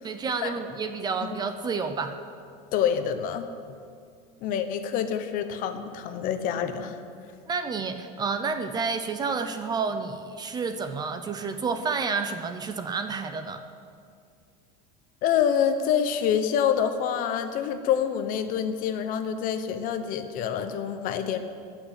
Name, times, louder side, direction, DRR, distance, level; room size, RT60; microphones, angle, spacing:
voice 1, 0.0-2.2 7.5-13.6, right 5 dB, 20° right, 8 dB, 0.7 m, -30 dB
voice 2, 2.7-3.5 4.4-7.0 15.2-21.4, left 8 dB, 45° left, 8 dB, 1.0 m, -26 dB
14.5 x 6.3 x 9.9 m, 2.3 s
supercardioid pair, 150°, 20 cm